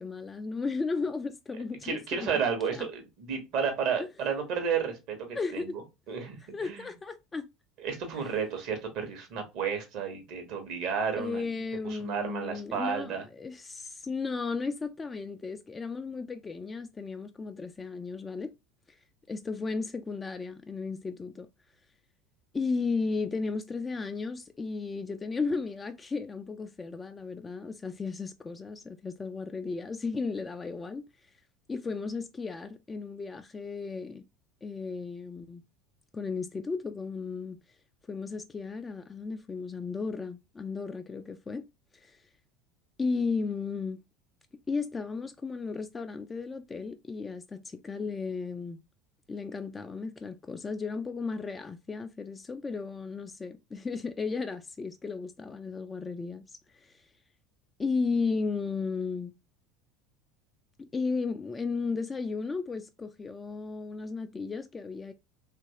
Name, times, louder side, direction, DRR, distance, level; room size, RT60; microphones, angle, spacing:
voice 1, 0.0-2.3 2.7-2.9 4.0-4.1 5.4-5.7 6.5-7.5 11.2-18.5 19.3-21.5 22.5-31.0 31.7-34.2 34.6-35.6 36.1-37.6 38.1-41.6 41.9-42.2 43.0-44.0 44.7-48.8 49.3-57.0 57.8-59.3 60.8-65.1, left 4 dB, 20° left, 0.3 m, -34 dB
voice 2, 1.8-5.8 6.1-6.9 7.8-11.5 11.8-13.2, right 6 dB, 55° right, 1.0 m, -32 dB
3.0 x 2.5 x 2.7 m
figure-of-eight pair, 70°, 0 cm